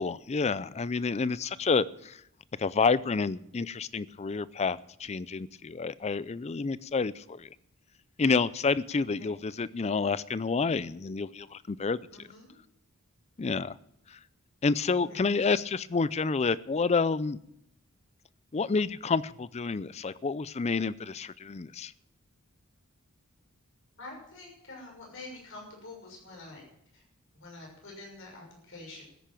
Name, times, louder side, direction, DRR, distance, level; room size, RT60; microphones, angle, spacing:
voice 1, 0.0-2.2 2.6-7.5 8.2-12.3 13.4-13.8 14.1-14.2 14.6-17.4 18.5-21.9, left 4 dB, 30° left, 18 dB, 0.4 m, -29 dB
voice 2, 8.9-9.6 12.1-12.6 15.0-15.3 24.0-26.6 26.9-27.0 27.3-29.0, left 2 dB, 60° left, 0 dB, 6.5 m, -47 dB
13.5 x 10.5 x 7.6 m, 0.74 s
head